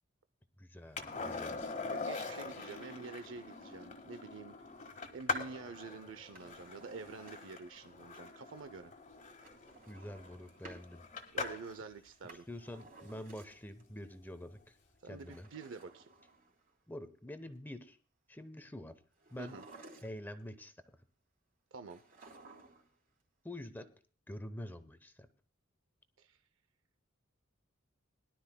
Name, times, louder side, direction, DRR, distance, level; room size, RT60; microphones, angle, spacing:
voice 1, 0.6-1.6 9.9-11.0 12.5-14.8 15.1-15.5 16.9-18.0 18.3-18.9 19.3-19.6 20.0-21.0 23.4-23.9 24.3-25.3, left 1 dB, 10° left, 11 dB, 0.7 m, -46 dB
Skateboard, 1.0-11.8 14.4-14.5, left 4 dB, 35° left, 1.6 m, -43 dB
voice 2, 1.9-4.5 5.1-8.9 11.3-12.5 15.0-16.1 19.4-19.6 21.7-22.0 26.2-26.4, right 4 dB, 65° right, 10 dB, 0.6 m, -48 dB
Drawer open or close, 6.2-7.7 9.4-10.9 12.0-13.8 15.1-16.7 19.2-20.4 21.9-23.0 23.2-23.3, right 3 dB, 45° right, 3.3 m, -56 dB
21.0 x 12.0 x 2.2 m, 0.38 s
head